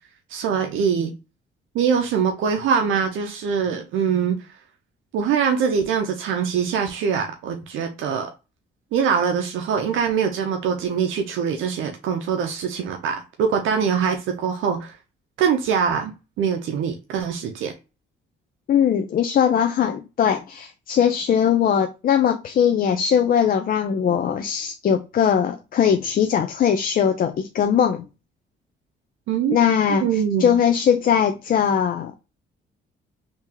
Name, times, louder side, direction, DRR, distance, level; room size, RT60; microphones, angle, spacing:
voice 1, 0.3-1.1 1.7-4.4 5.1-8.3 8.9-15.0 15.4-17.7 29.3-29.6 29.9-30.5, right 7 dB, 80° right, 0.6 m, -23 dB
voice 2, 18.7-28.0 29.5-32.1, left 8 dB, 45° left, 0.4 m, -20 dB
3.6 x 2.8 x 2.8 m
cardioid pair, 90°, 20 cm